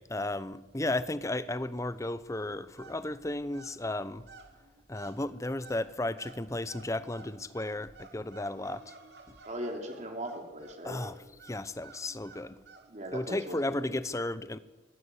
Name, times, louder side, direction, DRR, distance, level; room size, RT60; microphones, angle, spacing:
voice 1, 0.0-4.2 4.9-8.9 9.3-9.4 10.8-11.2 11.4-12.6 13.1-14.6, left 2 dB, 20° left, 0.8 m, -34 dB
sound 1, 2.5-12.9, right 3 dB, 70° right, 2.6 m, -54 dB
voice 2, 9.4-11.0 12.9-13.9, equal, 40° right, 3.1 m, -39 dB
20.5 x 15.5 x 8.4 m
head